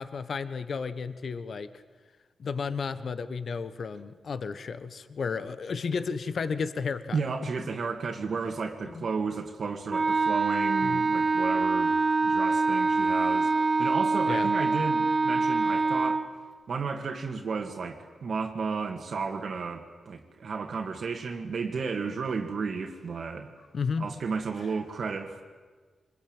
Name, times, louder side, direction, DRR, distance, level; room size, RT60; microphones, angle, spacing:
voice 1, 0.0-1.7 2.4-7.2 7.6-7.7 8.8-9.1 10.8-11.0 14.2-14.5 23.7-24.0, left 5 dB, 60° left, 1.2 m, -33 dB
voice 2, 7.1-16.2 16.7-23.5 24.0-25.4, right 5 dB, 60° right, 2.2 m, -33 dB
Wind instrument woodwind instrument, 9.9-16.3, right 3 dB, 35° right, 1.6 m, -25 dB
25.0 x 21.5 x 8.9 m
cardioid pair, 95°, 0 cm